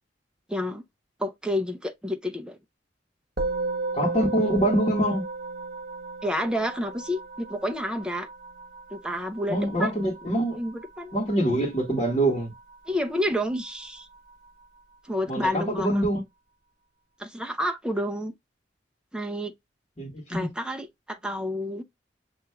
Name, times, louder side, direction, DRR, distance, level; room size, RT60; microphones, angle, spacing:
voice 1, 0.5-0.8 1.2-2.6 6.2-8.3 8.9-9.9 10.5-11.1 12.9-14.1 15.0-16.0 17.2-18.3 19.1-19.5 20.3-21.8, equal, 5° right, 0.5 m, -29 dB
Musical instrument, 3.4-12.9, right 3 dB, 50° right, 1.2 m, -35 dB
voice 2, 3.9-5.2 9.5-10.6 11.1-12.5 15.3-16.2 20.0-20.5, right 1 dB, 30° left, 1.6 m, -24 dB
6.1 x 2.9 x 2.2 m
head